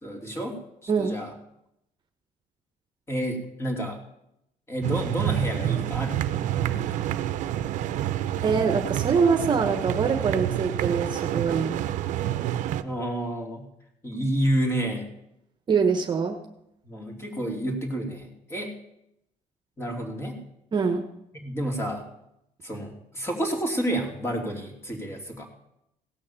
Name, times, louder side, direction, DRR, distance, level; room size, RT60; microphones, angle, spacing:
voice 1, 0.0-1.3 3.1-4.0 4.7-6.2 6.7-7.0 12.8-13.7 14.0-15.1 16.8-18.7 19.8-20.4 21.3-22.1 22.6-25.5, right 1 dB, 20° left, 2 dB, 2.7 m, -30 dB
sound 1, 4.8-12.8, right 12 dB, 75° right, 0.7 m, -28 dB
voice 2, 8.4-11.8 15.7-16.4 20.7-21.1, right 5 dB, 35° right, 6 dB, 1.1 m, -24 dB
16.5 x 6.4 x 7.0 m, 0.81 s
cardioid pair, 125°, 13 cm